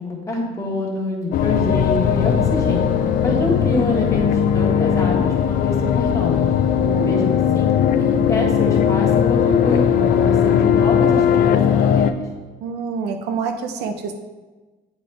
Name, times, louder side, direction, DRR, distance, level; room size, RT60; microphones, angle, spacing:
voice 1, 0.0-2.9 3.2-6.5 7.0-12.0, left 1 dB, 20° left, -2 dB, 1.5 m, -25 dB
sound 1, 1.3-12.1, left 8 dB, 55° left, 0.4 m, -18 dB
voice 2, 6.8-7.3 12.6-14.1, right 5 dB, 80° right, 6 dB, 0.7 m, -27 dB
8.4 x 4.1 x 3.4 m, 1.3 s
cardioid pair, 110°, 17 cm